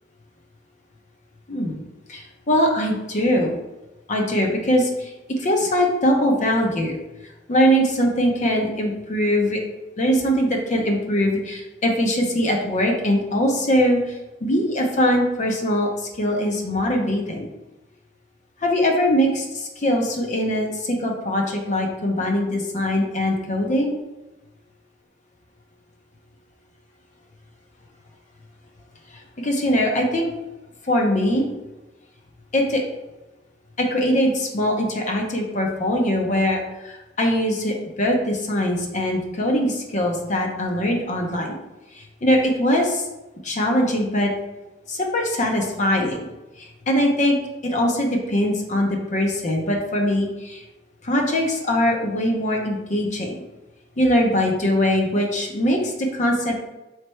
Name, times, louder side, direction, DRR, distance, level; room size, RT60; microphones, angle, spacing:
voice 1, 1.5-1.8 2.1-3.5 4.1-7.0 7.5-9.6 10.0-17.5 18.6-24.0 29.1-30.3 30.8-31.5 32.5-32.8 33.8-41.5 41.9-43.1 43.4-44.3 44.9-46.2 46.6-47.4 47.6-50.6 51.0-53.4 54.0-56.5, equal, 40° left, 1 dB, 0.6 m, -22 dB
4.2 x 3.3 x 3.1 m, 1.0 s
head